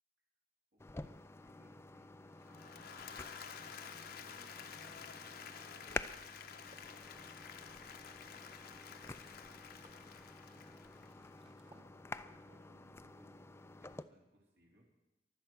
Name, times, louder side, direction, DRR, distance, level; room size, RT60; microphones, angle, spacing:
voice 1, 0.7-7.4 8.3-10.7 10.9-14.9, equal, 70° right, -2 dB, 3.4 m, -69 dB
sound 1, 0.8-14.0, left 2 dB, 15° left, 0.4 m, -50 dB
Applause / Crowd, 2.4-11.5, left 7 dB, 60° left, 1.0 m, -51 dB
sound 2, 6.7-11.8, right 1 dB, 30° right, 1.6 m, -67 dB
23.0 x 8.1 x 6.1 m, 0.98 s
head